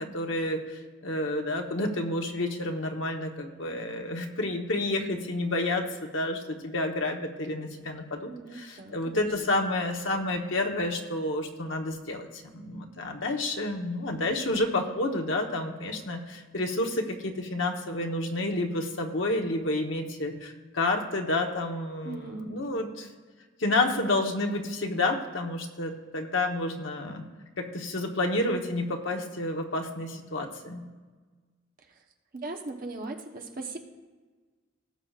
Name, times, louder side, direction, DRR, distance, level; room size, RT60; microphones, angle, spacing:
voice 1, 0.0-23.1 23.6-27.2 27.6-30.8, left 2 dB, 70° left, 2 dB, 1.1 m, -30 dB
voice 2, 8.3-9.3 22.0-22.5 32.3-33.8, right 2 dB, 45° right, 3 dB, 1.0 m, -38 dB
18.0 x 7.3 x 2.5 m, 1.4 s
head